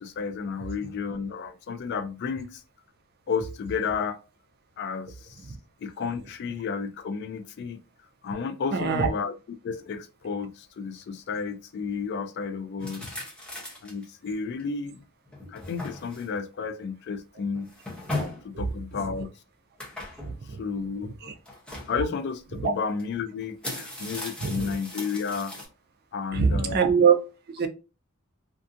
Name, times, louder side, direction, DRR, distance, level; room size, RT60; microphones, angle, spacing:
voice 1, 0.0-2.6 3.3-4.2 4.8-5.1 5.8-7.8 8.2-9.3 9.6-13.2 13.8-15.0 15.5-17.7 18.4-19.3 20.6-21.3 21.9-25.5 26.1-26.8, left 5 dB, 55° left, 0.3 m, -32 dB
voice 2, 8.7-9.1 18.5-18.7 18.9-19.1 20.2-20.6 21.2-21.3 22.6-22.7 24.4-24.8 26.3-27.2 27.5-27.7, right 6 dB, 50° right, 0.4 m, -23 dB
sound 1, 12.8-14.0 14.6-14.7 15.3-16.4 17.5-18.5 19.8-20.4 21.5-21.9 23.0-23.1 23.4-25.7, left 2 dB, 5° left, 0.7 m, -37 dB
2.5 x 2.5 x 2.4 m
head